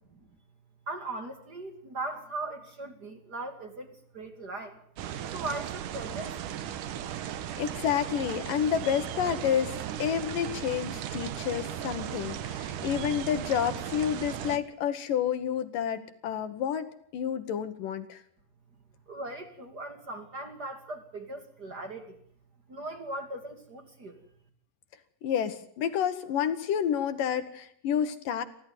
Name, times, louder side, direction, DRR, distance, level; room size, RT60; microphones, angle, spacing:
voice 1, 0.8-4.8 5.3-7.1 19.1-22.2 22.7-24.2, right 2 dB, 35° right, 7 dB, 1.8 m, -39 dB
sound 1, 5.0-14.6, right 10 dB, 90° right, 1.7 m, -36 dB
voice 2, 7.6-9.7 10.0-18.2 25.2-28.4, left 9 dB, 70° left, 10 dB, 2.2 m, -29 dB
25.5 x 15.0 x 9.5 m, 0.64 s
omnidirectional pair, 5.4 m